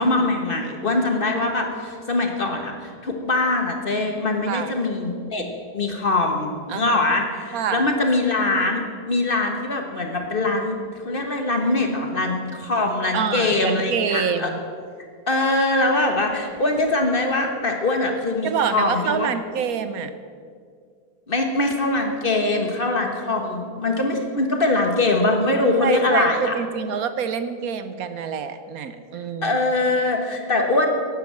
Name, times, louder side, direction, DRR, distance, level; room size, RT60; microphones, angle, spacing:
voice 1, 0.0-5.5 5.7-8.8 9.1-10.8 11.0-14.5 15.3-19.3 21.3-26.5 29.4-30.9, left 2 dB, 35° left, 3 dB, 1.3 m, -22 dB
voice 2, 6.7-7.0 7.5-7.9 13.1-14.6 18.4-20.1 25.8-29.6, right 7 dB, 65° right, 11 dB, 1.1 m, -26 dB
12.0 x 8.5 x 7.4 m, 2.2 s
omnidirectional pair, 1.8 m